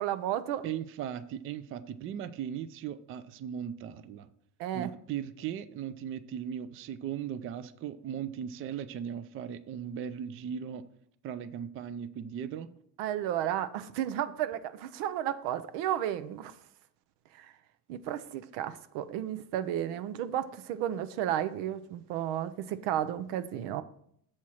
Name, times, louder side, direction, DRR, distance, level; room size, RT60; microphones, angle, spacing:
voice 1, 0.0-0.6 4.6-4.9 13.0-16.5 17.4-17.5 17.9-23.8, right 11 dB, 90° right, 0.7 m, -33 dB
voice 2, 0.6-4.3 4.7-10.9 11.2-12.7, right 9 dB, 35° right, 0.4 m, -38 dB
7.2 x 4.4 x 6.3 m
cardioid pair, 145°, 40 cm